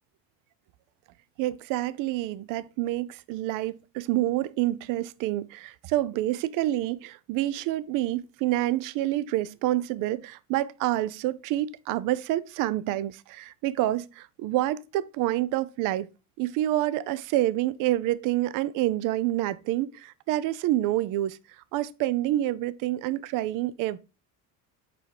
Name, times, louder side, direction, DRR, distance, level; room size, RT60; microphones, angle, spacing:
voice 1, 1.4-16.1 16.4-21.4 21.7-24.0, right 15 dB, 60° right, 0.5 m, -28 dB
5.3 x 4.3 x 4.8 m
supercardioid pair, 110°, 37 cm